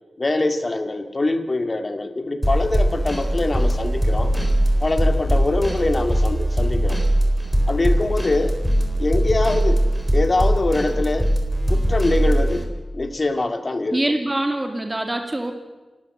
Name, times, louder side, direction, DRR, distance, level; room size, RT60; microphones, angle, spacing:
voice 1, 0.2-4.3 4.8-7.0 7.7-8.6 9.0-9.8 10.1-11.3 11.7-12.7 12.9-14.0, left 2 dB, 40° left, 8 dB, 2.1 m, -23 dB
sound 1, 2.4-12.6, equal, 5° right, 3.8 m, -20 dB
voice 2, 13.9-15.5, right 1 dB, 20° right, 5 dB, 2.3 m, -24 dB
28.0 x 13.0 x 7.8 m, 1.2 s
wide cardioid pair, 70°, 0 cm